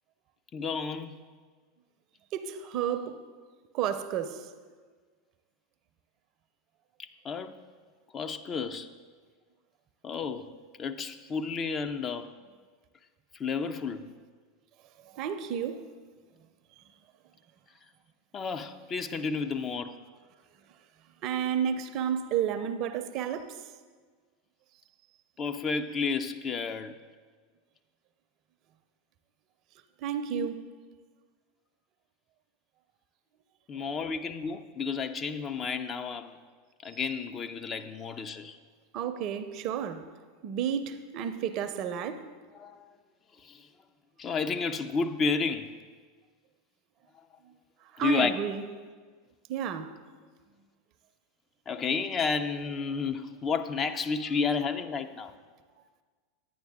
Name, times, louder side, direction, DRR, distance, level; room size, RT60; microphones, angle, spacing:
voice 1, 0.5-1.2 7.0-7.5 8.1-8.9 10.0-10.5 10.8-12.3 13.4-14.1 18.3-20.0 25.4-26.9 33.7-36.3 36.8-38.6 42.6-42.9 43.4-43.6 44.2-45.7 48.0-48.3 51.7-55.3, left 5 dB, 30° left, 0.5 m, -31 dB
voice 2, 2.3-3.2 3.7-4.5 15.0-15.8 16.8-16.9 21.2-23.6 30.0-30.6 38.9-40.1 40.4-42.3 47.9-48.6 49.5-50.0, right 8 dB, 50° right, 0.6 m, -31 dB
10.0 x 9.1 x 3.6 m
figure-of-eight pair, 85°, 0 cm